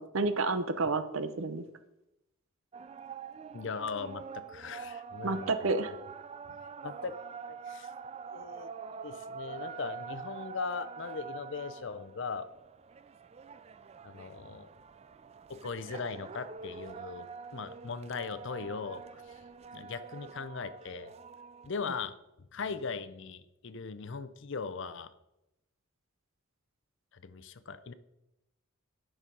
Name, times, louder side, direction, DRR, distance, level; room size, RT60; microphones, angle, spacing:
voice 1, 0.0-1.6 5.2-5.9, right 3 dB, 75° right, 11 dB, 0.8 m, -30 dB
sound 1, 2.7-21.9, right 5 dB, 30° right, 0.3 m, -46 dB
voice 2, 3.5-5.7 6.5-7.2 7.5-7.9 8.2-8.7 9.0-12.5 14.0-14.7 15.5-19.3 19.7-21.1 21.7-22.1 22.5-25.1 27.1-27.9, left 5 dB, 60° left, 13 dB, 0.6 m, -39 dB
10.0 x 6.2 x 5.3 m, 0.90 s
head